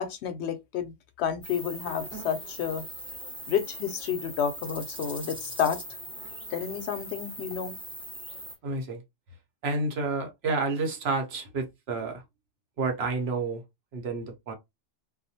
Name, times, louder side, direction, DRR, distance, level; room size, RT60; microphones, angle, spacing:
voice 1, 0.0-2.8 3.5-5.8 6.5-7.7, left 8 dB, 70° left, 0.8 m, -30 dB
sound 1, 1.4-8.6, equal, 5° right, 0.6 m, -40 dB
voice 2, 8.6-9.0 9.6-12.2 12.8-13.6 13.9-14.5, right 3 dB, 65° right, 0.9 m, -30 dB
2.3 x 2.1 x 2.7 m
omnidirectional pair, 1.2 m